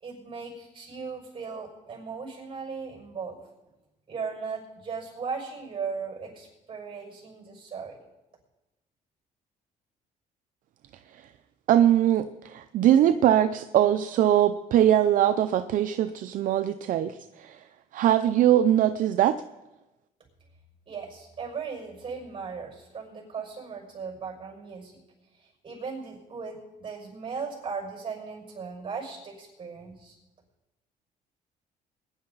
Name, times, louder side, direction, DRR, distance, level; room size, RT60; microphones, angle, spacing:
voice 1, 0.0-3.4 4.1-8.0 20.9-25.0 25.6-30.2, right 5 dB, 35° right, 0 dB, 5.6 m, -37 dB
voice 2, 11.7-17.6 17.9-19.4, right 11 dB, 60° right, 10 dB, 0.5 m, -22 dB
21.0 x 10.5 x 4.0 m, 1.0 s
cardioid pair, 125°, 15 cm